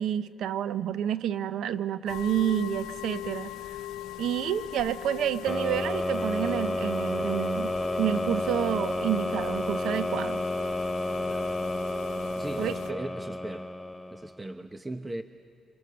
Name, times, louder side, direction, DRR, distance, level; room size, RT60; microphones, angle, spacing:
voice 1, 0.0-3.5 4.2-10.4 12.6-12.8, right 10 dB, 80° right, 13 dB, 0.8 m, -29 dB
sound 1, 2.1-12.9, left 12 dB, 85° left, 0.7 m, -41 dB
sound 2, 5.5-14.4, left 1 dB, 10° left, 0.6 m, -31 dB
voice 2, 12.3-13.7 14.1-15.2, right 1 dB, 15° right, 8 dB, 0.9 m, -38 dB
26.5 x 25.0 x 6.8 m, 2.2 s
cardioid pair, 90°, 0 cm